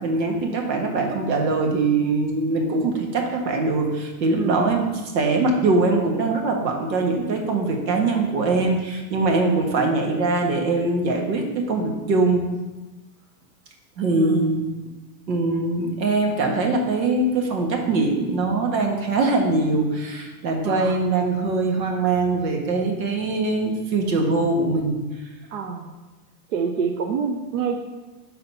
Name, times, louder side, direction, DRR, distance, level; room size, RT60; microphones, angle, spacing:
voice 1, 0.0-4.8 5.1-12.4 14.0-14.7 15.3-25.0, right 3 dB, 80° right, 2 dB, 1.5 m, -22 dB
voice 2, 4.3-4.7 14.1-14.6 20.6-21.2 25.5-25.9 26.5-27.8, right 6 dB, 50° right, 4 dB, 0.6 m, -27 dB
5.7 x 4.1 x 5.4 m, 1.1 s
supercardioid pair, 165°, 49 cm